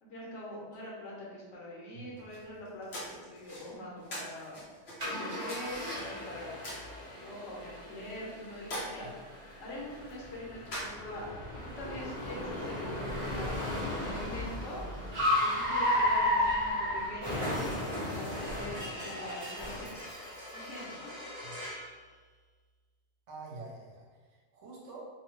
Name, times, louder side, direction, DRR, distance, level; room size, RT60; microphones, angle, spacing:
voice 1, 0.0-4.6 5.0-6.6 7.0-9.1 9.6-14.8 15.4-17.4 18.1-19.9 20.5-21.1, left 1 dB, 80° left, -4 dB, 1.1 m, -44 dB
sound 1, 2.1-11.4, equal, 60° left, 1.0 m, -45 dB
Car, 5.0-21.9, left 1 dB, 30° right, 0.8 m, -34 dB
voice 2, 23.3-25.0, right 3 dB, 70° right, -3 dB, 0.9 m, -47 dB
2.7 x 2.0 x 3.0 m, 1.5 s
omnidirectional pair, 1.2 m